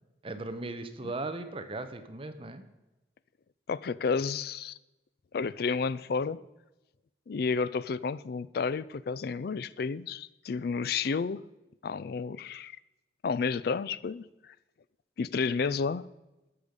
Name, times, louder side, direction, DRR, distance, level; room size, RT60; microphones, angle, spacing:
voice 1, 0.2-2.6, right 2 dB, 30° right, 0.8 m, -37 dB
voice 2, 3.7-4.8 5.3-6.4 7.3-11.5 11.8-12.8 13.2-14.5 15.2-16.1, left 5 dB, 60° left, 0.4 m, -31 dB
13.5 x 6.5 x 5.2 m
head